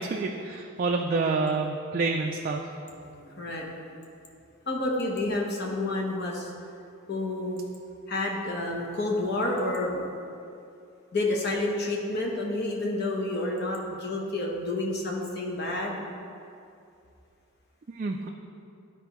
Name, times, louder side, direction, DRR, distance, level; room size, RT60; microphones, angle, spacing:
voice 1, 0.0-2.7 17.9-18.3, right 3 dB, 40° right, 2 dB, 0.3 m, -28 dB
voice 2, 3.2-3.7 4.7-6.5 7.1-7.6 8.1-10.0 11.1-16.0, left 2 dB, 50° left, -1 dB, 1.0 m, -29 dB
12.5 x 4.5 x 3.0 m, 2.5 s
head